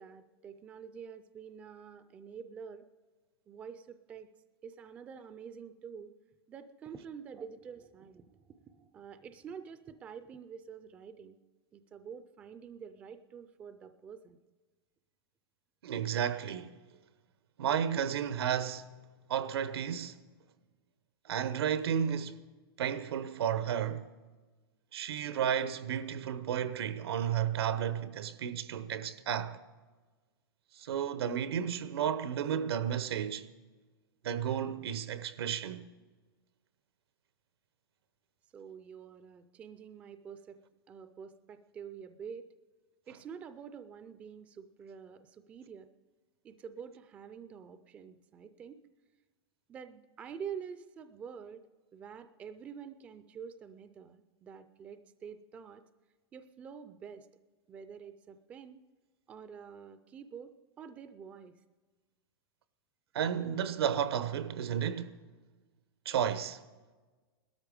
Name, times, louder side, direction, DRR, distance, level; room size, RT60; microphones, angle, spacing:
voice 1, 0.0-2.8 3.5-4.3 4.6-6.1 6.5-11.4 11.7-14.4 38.5-40.6 40.9-42.5 43.1-45.9 46.4-48.8 49.7-51.6 51.9-55.8 56.3-57.3 57.7-58.8 59.3-61.6, right 7 dB, 10° right, 0.4 m, -47 dB
voice 2, 15.8-16.7 17.6-19.0 19.3-20.2 21.2-22.4 22.8-24.1 24.9-29.6 30.8-33.5 34.2-35.9 63.1-65.2 66.0-66.6, right 9 dB, 80° right, 0.9 m, -32 dB
18.0 x 13.0 x 5.1 m
supercardioid pair, 170°, 13 cm